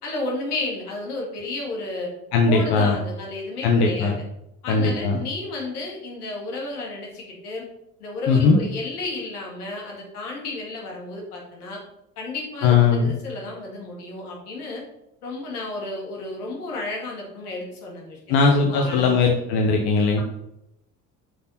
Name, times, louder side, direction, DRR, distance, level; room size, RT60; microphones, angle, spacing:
voice 1, 0.0-2.1 2.4-4.1 4.6-7.7 8.0-11.8 12.2-14.8 15.2-19.3, left 2 dB, 80° left, -1 dB, 2.3 m, -32 dB
voice 2, 2.3-3.0 3.6-4.2 4.7-5.2 8.3-8.6 12.6-13.1 18.3-20.2, left 4 dB, 60° left, 2 dB, 1.3 m, -19 dB
8.0 x 5.6 x 4.3 m, 0.83 s
hypercardioid pair, 55°, 45 cm